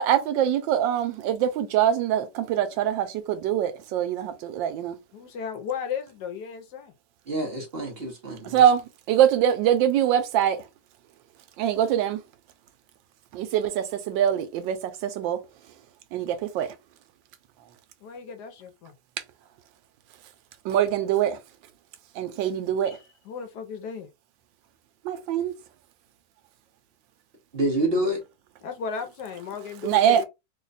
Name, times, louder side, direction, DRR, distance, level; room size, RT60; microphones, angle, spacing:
voice 1, 0.0-5.0 8.4-8.8 9.1-10.6 11.6-12.2 13.3-15.4 16.1-16.7 20.6-21.4 22.2-23.0 25.0-25.5 29.8-30.2, right 10 dB, 85° right, 1.3 m, -23 dB
voice 2, 5.1-6.9 18.0-18.9 22.9-24.1 27.9-28.0 28.6-30.2, left 6 dB, 70° left, 1.1 m, -35 dB
voice 3, 7.3-8.6 27.5-28.2, right 1 dB, 45° right, 0.9 m, -27 dB
3.2 x 2.2 x 3.9 m
omnidirectional pair, 2.0 m